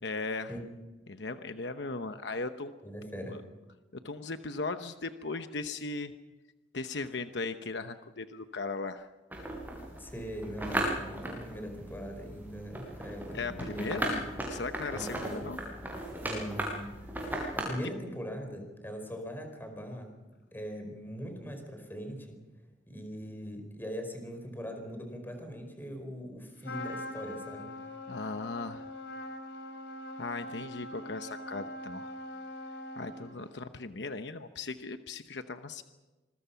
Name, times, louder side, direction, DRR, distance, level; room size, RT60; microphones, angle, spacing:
voice 1, 0.0-0.5 1.1-2.7 3.3-3.4 4.0-6.1 6.7-9.1 13.3-15.6 28.1-28.9 30.2-32.1 33.0-35.8, left 3 dB, 70° left, 8 dB, 1.0 m, -37 dB
voice 2, 2.8-3.4 10.0-14.2 14.9-15.5 16.2-17.1 17.5-20.1 20.5-22.4 22.9-27.7, equal, 10° left, 4 dB, 4.5 m, -41 dB
sound 1, 9.3-17.6, right 1 dB, 10° right, 7.1 m, -37 dB
Trumpet, 26.6-33.6, left 1 dB, 90° left, 3.6 m, -42 dB
26.5 x 21.5 x 5.8 m, 1.1 s
head